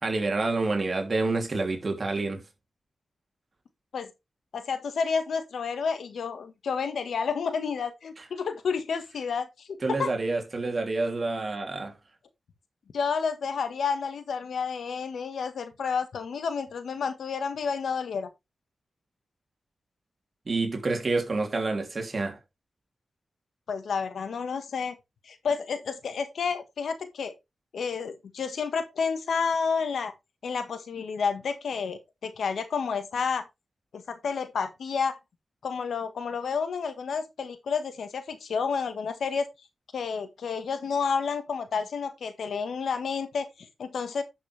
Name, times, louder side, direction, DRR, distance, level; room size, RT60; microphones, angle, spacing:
voice 1, 0.0-2.4 9.8-11.9 20.5-22.4, right 3 dB, 45° right, 3.1 m, -28 dB
voice 2, 4.5-10.1 12.9-18.3 23.7-25.0 25.2-27.3 27.7-30.1 30.4-33.5 33.9-35.2 35.6-39.5 39.9-44.2, left 5 dB, 90° left, 1.5 m, -30 dB
11.0 x 6.5 x 3.3 m
cardioid pair, 70°, 0 cm